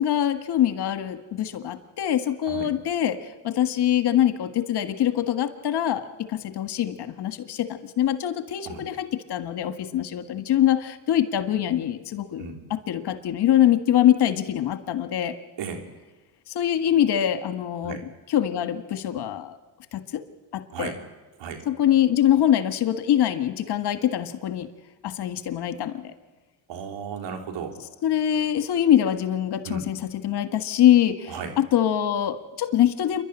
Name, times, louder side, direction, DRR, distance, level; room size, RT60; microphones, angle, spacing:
voice 1, 0.0-15.4 16.5-18.0 18.3-19.6 19.9-20.2 20.5-20.9 21.7-24.7 25.0-26.1 28.0-33.2, left 11 dB, 60° left, 9 dB, 1.7 m, -24 dB
voice 2, 26.7-27.8 29.6-29.9 31.3-31.5, right 6 dB, 70° right, 4 dB, 3.7 m, -34 dB
28.0 x 12.0 x 10.0 m, 1.2 s
supercardioid pair, 70°, 44 cm